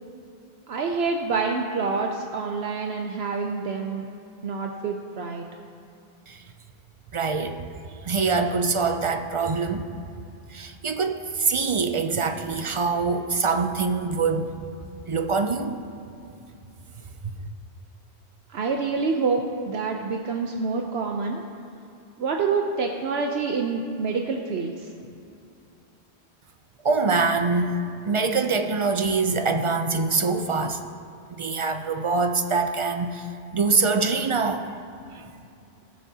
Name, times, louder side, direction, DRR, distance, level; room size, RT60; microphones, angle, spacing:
voice 1, 0.7-4.1 4.4-5.5 18.5-21.4 22.2-24.9, right 4 dB, 70° right, 2 dB, 0.9 m, -27 dB
voice 2, 7.1-7.6 8.0-9.9 10.5-14.5 15.1-15.8 17.2-17.3 26.8-30.8 31.3-33.3 33.5-34.6 35.1-35.2, right 4 dB, 50° right, 6 dB, 0.3 m, -24 dB
18.5 x 6.6 x 2.8 m, 2.6 s
omnidirectional pair, 1.1 m